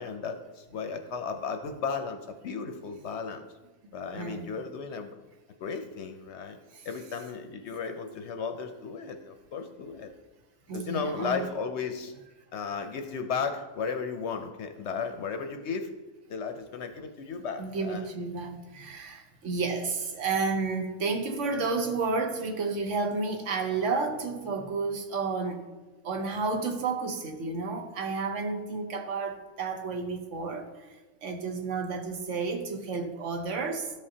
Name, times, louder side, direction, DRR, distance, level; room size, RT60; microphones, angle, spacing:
voice 1, 0.0-3.5 3.9-5.2 5.6-6.6 6.8-10.1 10.7-12.1 12.5-15.9 16.3-18.1, left 5 dB, 65° left, 6 dB, 0.8 m, -35 dB
voice 2, 4.1-4.5 6.7-6.9 10.7-11.5 17.6-25.6 26.0-30.7 31.2-33.9, right 4 dB, 65° right, 4 dB, 1.1 m, -31 dB
13.0 x 5.3 x 2.8 m, 1.2 s
omnidirectional pair, 1.4 m